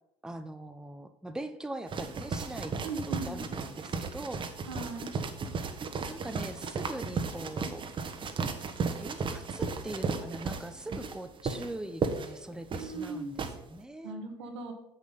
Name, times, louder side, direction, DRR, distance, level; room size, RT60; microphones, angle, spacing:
voice 1, 0.2-2.7 3.0-4.4 6.1-7.8 8.9-14.2, right 1 dB, 5° right, 8 dB, 0.8 m, -41 dB
sound 1, 1.9-13.5, right 4 dB, 35° right, 1.2 m, -35 dB
voice 2, 2.8-3.5 4.7-5.1 12.8-13.4 14.0-14.7, right 3 dB, 85° right, 4 dB, 1.5 m, -38 dB
7.3 x 6.4 x 5.6 m, 0.85 s
hypercardioid pair, 75°, 14 cm